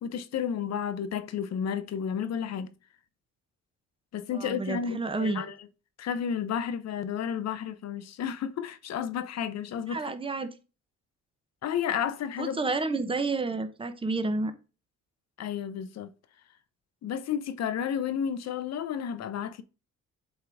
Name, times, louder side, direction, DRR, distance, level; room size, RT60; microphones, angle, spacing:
voice 1, 0.0-2.7 4.1-5.5 6.0-10.1 11.6-12.6 15.4-16.1 17.0-19.6, left 8 dB, 60° left, 0.7 m, -32 dB
voice 2, 4.3-5.4 9.9-10.5 12.4-14.5, right 3 dB, 20° right, 0.9 m, -30 dB
7.9 x 3.7 x 3.4 m
cardioid pair, 90°, 30 cm